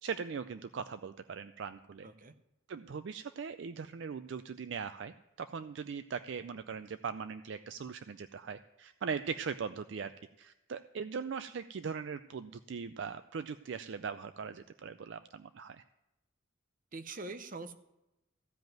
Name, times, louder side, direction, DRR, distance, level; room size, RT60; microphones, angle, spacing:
voice 1, 0.0-2.1 2.7-10.1 10.4-15.8, right 6 dB, 60° right, 11 dB, 0.4 m, -40 dB
voice 2, 2.0-2.3 16.9-17.8, right 3 dB, 40° right, 10 dB, 0.8 m, -43 dB
15.0 x 5.2 x 9.1 m, 0.93 s
head